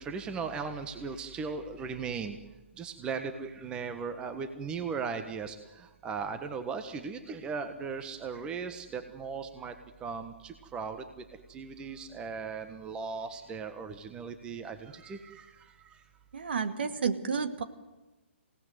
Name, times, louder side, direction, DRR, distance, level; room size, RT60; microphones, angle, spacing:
voice 1, 0.0-2.4 2.8-11.2 11.5-15.7, right 5 dB, 15° right, 9 dB, 1.4 m, -37 dB
voice 2, 16.3-17.6, right 5 dB, 55° right, 8 dB, 2.3 m, -31 dB
27.0 x 18.0 x 9.4 m, 1.1 s
figure-of-eight pair, 130°, 7 cm